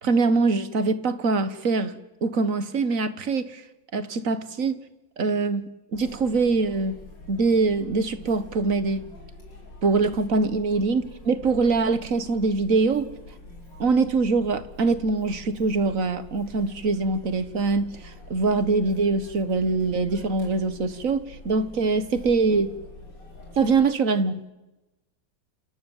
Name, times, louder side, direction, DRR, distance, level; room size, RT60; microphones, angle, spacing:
voice 1, 0.0-3.6 3.9-4.8 5.2-7.0 7.3-9.1 9.8-13.1 13.8-22.8 23.6-24.5, right 4 dB, 45° right, 1.8 m, -23 dB
Chatter, 5.9-23.8, left 2 dB, 65° left, 6.2 m, -45 dB
29.0 x 27.5 x 7.4 m
omnidirectional pair, 2.1 m